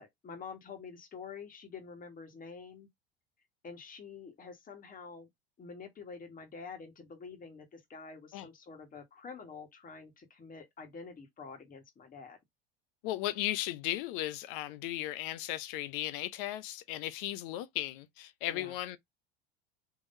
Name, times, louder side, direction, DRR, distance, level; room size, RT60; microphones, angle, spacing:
voice 1, 0.0-2.9 3.6-5.3 5.6-12.4 18.5-18.7, left 5 dB, 30° left, 1.5 m, -47 dB
voice 2, 13.0-19.0, left 14 dB, 60° left, 0.7 m, -36 dB
3.8 x 3.0 x 2.6 m
hypercardioid pair, 80°, 30 cm